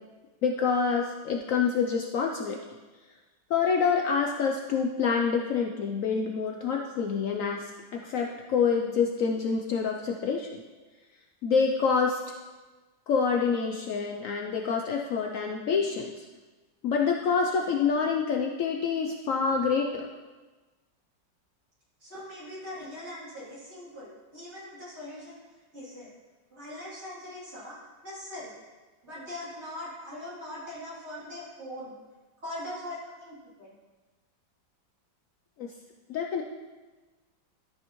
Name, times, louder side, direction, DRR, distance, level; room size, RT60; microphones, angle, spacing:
voice 1, 0.4-2.6 3.5-10.6 11.4-12.2 13.1-16.2 16.8-20.1 35.6-35.7 36.1-36.4, left 5 dB, 90° left, 1 dB, 0.7 m, -27 dB
voice 2, 22.0-25.4 25.7-26.1 26.5-27.8 28.0-28.5 29.0-31.9 32.4-33.8, left 1 dB, 35° right, -9 dB, 3.2 m, -41 dB
13.0 x 5.6 x 3.0 m, 1.3 s
omnidirectional pair, 2.0 m